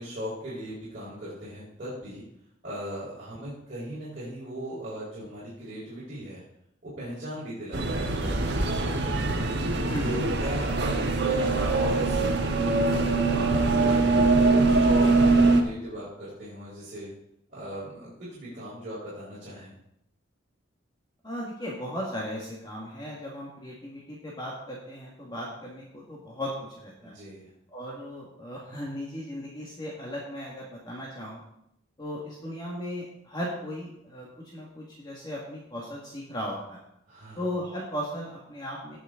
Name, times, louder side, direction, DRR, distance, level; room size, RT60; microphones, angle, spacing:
voice 1, 0.0-2.2 2.6-6.4 6.8-9.5 10.0-13.1 13.6-17.1 17.5-19.7 27.0-27.5 37.1-37.4, equal, 40° right, -10 dB, 4.4 m, -38 dB
sound 1, 7.7-15.6, right 3 dB, 60° right, 1.3 m, -23 dB
voice 2, 9.9-10.4 21.2-27.2 27.7-31.4 32.0-36.8 37.4-39.0, equal, 20° left, -4 dB, 1.9 m, -36 dB
18.0 x 6.4 x 3.8 m, 0.78 s
head